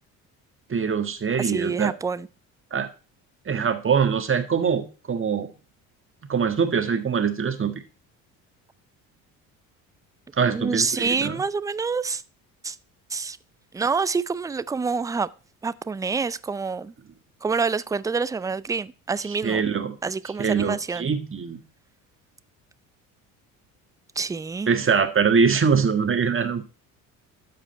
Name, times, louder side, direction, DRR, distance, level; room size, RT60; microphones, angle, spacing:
voice 1, 0.7-1.9 2.7-2.9 3.4-5.5 6.3-7.8 10.4-11.4 19.3-19.9 20.4-21.6 24.7-26.6, right 6 dB, 30° right, 1.5 m, -23 dB
voice 2, 1.4-2.3 10.5-12.2 12.6-12.8 13.1-13.4 13.7-15.3 15.6-16.9 17.4-19.6 20.0-21.1 24.2-24.7, right 4 dB, 10° right, 0.3 m, -27 dB
12.5 x 4.9 x 4.3 m
hypercardioid pair, 65°, 40 cm